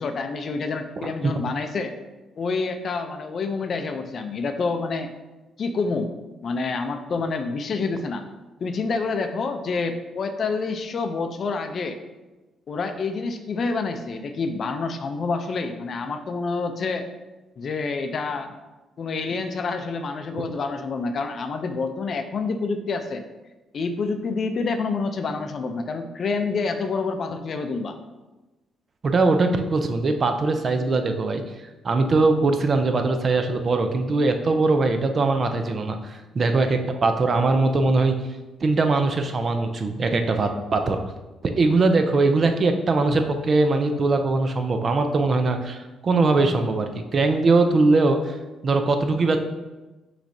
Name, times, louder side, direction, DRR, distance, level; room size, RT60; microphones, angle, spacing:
voice 1, 0.0-2.0 2.4-5.1 5.6-6.1 6.4-8.3 8.6-12.0 12.7-17.1 17.6-18.6 19.0-23.2 23.7-28.0, left 4 dB, 50° left, 7 dB, 0.5 m, -27 dB
voice 2, 1.0-1.5 29.0-38.1 38.6-41.0 41.4-48.4 48.6-49.4, right 3 dB, 45° right, 6 dB, 0.5 m, -21 dB
6.0 x 3.2 x 2.7 m, 1.1 s
cardioid pair, 90°, 0 cm